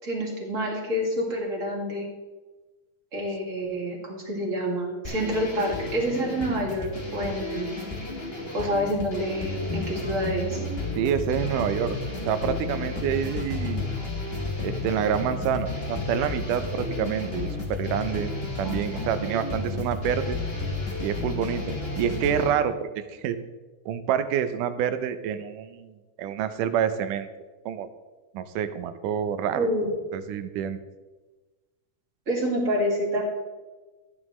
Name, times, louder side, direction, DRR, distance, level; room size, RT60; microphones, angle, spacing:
voice 1, 0.0-2.1 3.1-7.7 8.5-10.6 18.6-19.3 29.5-29.9 32.3-33.2, equal, 25° right, -2 dB, 2.3 m, -28 dB
sound 1, 5.0-22.5, left 3 dB, 30° left, 1.3 m, -32 dB
voice 2, 11.0-12.0 12.3-13.9 14.6-18.3 18.6-20.4 21.0-23.4 23.9-27.3 27.7-27.9 28.3-29.7 30.1-30.8, right 9 dB, 85° right, 10 dB, 2.3 m, -27 dB
14.0 x 9.7 x 3.2 m, 1.2 s
omnidirectional pair, 3.6 m